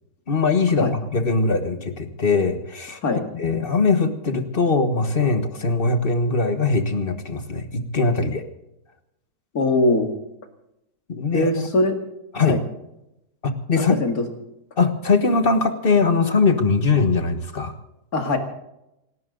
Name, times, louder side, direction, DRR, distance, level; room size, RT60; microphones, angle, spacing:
voice 1, 0.3-3.0 3.3-8.5 11.1-11.7 12.3-12.6 13.4-13.9 14.8-17.7, left 4 dB, 35° left, 8 dB, 1.6 m, -21 dB
voice 2, 9.5-10.1 11.3-12.0 12.5-12.6 13.9-14.3 18.1-18.4, left 2 dB, 70° left, 5 dB, 2.6 m, -21 dB
27.5 x 12.5 x 3.9 m, 0.87 s
omnidirectional pair, 1.6 m